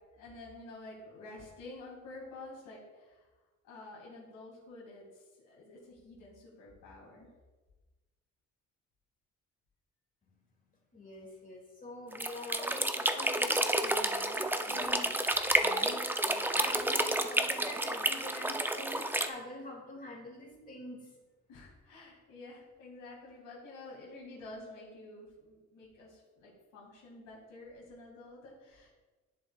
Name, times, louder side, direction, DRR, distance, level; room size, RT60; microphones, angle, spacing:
voice 1, 0.1-3.3 3.6-7.3 14.7-15.2 16.3-16.7 21.5-28.9, left 2 dB, 85° left, -4 dB, 2.4 m, -49 dB
voice 2, 10.9-15.1 15.4-16.0 16.4-21.1, left 1 dB, 30° left, 0 dB, 2.2 m, -46 dB
sound 1, 12.1-19.3, right 1 dB, 5° right, 0.5 m, -30 dB
10.5 x 7.3 x 2.4 m, 1.2 s
cardioid pair, 90°, 30 cm